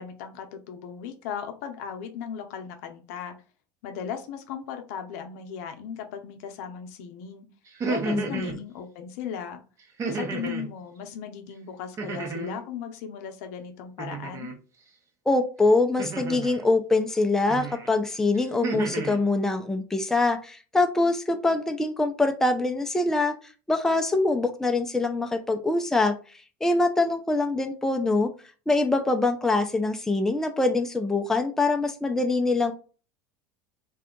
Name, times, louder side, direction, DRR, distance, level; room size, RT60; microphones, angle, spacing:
voice 1, 0.0-3.3 3.8-7.5 7.9-9.6 10.0-14.5, left 8 dB, 75° left, 6 dB, 0.6 m, -37 dB
sound 1, 7.7-8.6 10.0-10.7 12.0-12.6 14.0-14.6 16.0-16.6 17.5-17.9 18.3-19.2, right 4 dB, 35° right, 0.8 m, -32 dB
voice 2, 8.1-8.6 15.3-23.4 23.7-26.2 26.6-28.3 28.7-32.7, left 2 dB, 5° left, 5 dB, 0.4 m, -24 dB
2.7 x 2.3 x 3.5 m, 0.36 s
supercardioid pair, 115°, 9 cm